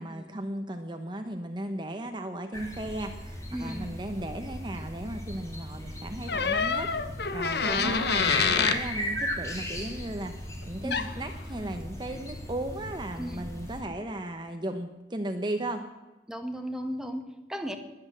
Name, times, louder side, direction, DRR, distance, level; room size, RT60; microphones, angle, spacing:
voice 1, 0.0-10.3 10.7-15.8, right 1 dB, 25° right, 6 dB, 0.9 m, -36 dB
sound 1, 2.5-13.8, equal, 15° left, 3.0 m, -37 dB
voice 2, 3.5-4.0 7.6-8.0 10.8-11.1 13.2-13.4 16.3-17.8, equal, 5° right, 5 dB, 1.3 m, -36 dB
sound 2, 6.3-8.8 10.9-11.1, left 5 dB, 60° left, 1.0 m, -26 dB
21.0 x 8.9 x 7.5 m, 1.1 s
head